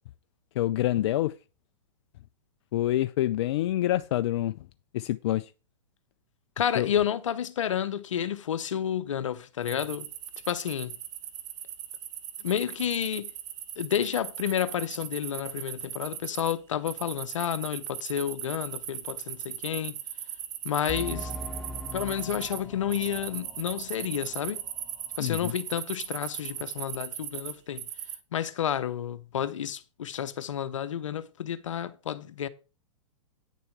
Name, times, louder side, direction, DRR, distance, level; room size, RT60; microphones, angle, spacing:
voice 1, 0.6-1.3 2.7-4.5 4.9-5.5 6.7-6.9 25.2-25.5, left 14 dB, 60° left, 0.5 m, -26 dB
voice 2, 6.6-10.1 10.5-10.9 12.4-13.3 13.8-19.9 20.6-21.3 21.9-24.6 25.2-27.8 28.3-32.5, left 9 dB, 80° left, 0.9 m, -30 dB
sound 1, 9.6-16.5 16.9-22.6 22.9-28.2, right 11 dB, 60° right, 1.3 m, -38 dB
sound 2, 20.9-25.2 25.5-25.6 26.1-26.2, equal, ahead, 1.1 m, -41 dB
9.3 x 6.8 x 4.6 m
hypercardioid pair, 125°, 16 cm